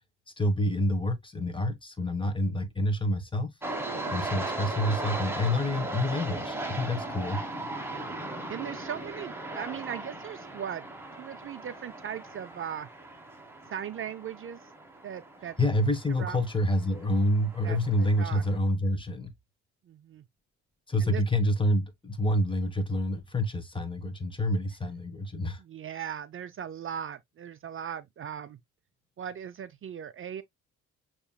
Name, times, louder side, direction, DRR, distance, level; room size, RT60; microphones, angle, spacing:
voice 1, 0.4-3.5 4.1-7.4 15.6-19.3 20.9-25.6, left 1 dB, 15° left, 1.2 m, -27 dB
sound 1, 3.6-18.6, right 2 dB, 10° right, 1.4 m, -38 dB
voice 2, 3.9-4.2 7.9-8.1 8.5-10.9 11.2-12.9 13.7-14.7 15.0-15.6 16.2-16.5 17.6-18.4 19.8-20.3 21.0-21.2 25.6-28.6 29.2-30.4, right 9 dB, 45° right, 0.5 m, -38 dB
6.9 x 3.0 x 2.2 m
cardioid pair, 90°, 30 cm